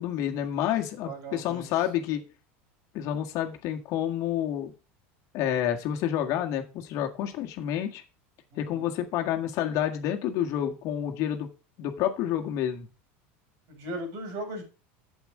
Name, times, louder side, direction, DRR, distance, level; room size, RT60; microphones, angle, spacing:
voice 1, 0.0-2.2 2.9-4.7 5.3-8.0 8.6-11.5 11.8-12.9, left 10 dB, 55° left, 4 dB, 1.8 m, -29 dB
voice 2, 1.0-1.7 8.5-9.0 13.7-14.6, right 1 dB, 60° right, 3 dB, 6.5 m, -38 dB
8.2 x 8.1 x 5.0 m, 0.31 s
supercardioid pair, 125°, 7 cm